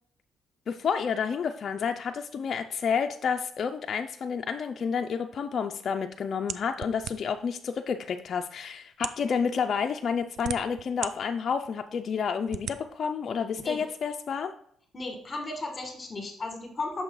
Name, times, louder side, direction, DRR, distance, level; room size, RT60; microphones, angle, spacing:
voice 1, 0.7-14.5, left 6 dB, 55° left, 5 dB, 0.3 m, -30 dB
sound 1, 6.5-7.5 8.3-8.4 8.9-9.3 10.0-11.1 11.6-11.7 12.5-12.8, right 9 dB, 75° right, 0.3 m, -36 dB
voice 2, 14.9-17.0, left 2 dB, 30° left, 3 dB, 1.3 m, -35 dB
6.3 x 3.0 x 5.2 m, 0.66 s
cardioid pair, 90°, 0 cm